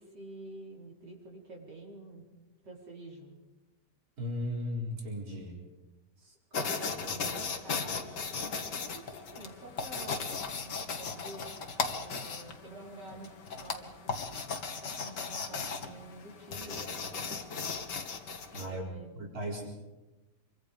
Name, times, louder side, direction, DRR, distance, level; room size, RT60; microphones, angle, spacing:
voice 1, 0.0-2.2 2.6-3.4 6.2-10.3 10.6-11.5 11.8-17.7 18.5-19.1, right 2 dB, 85° right, -3 dB, 5.0 m, -48 dB
voice 2, 4.2-5.6 18.5-18.8 19.1-19.7, left 1 dB, 60° right, -2 dB, 5.0 m, -36 dB
sound 1, 6.5-18.7, left 5 dB, 85° left, 2.3 m, -37 dB
26.5 x 23.5 x 5.3 m, 1.1 s
omnidirectional pair, 1.8 m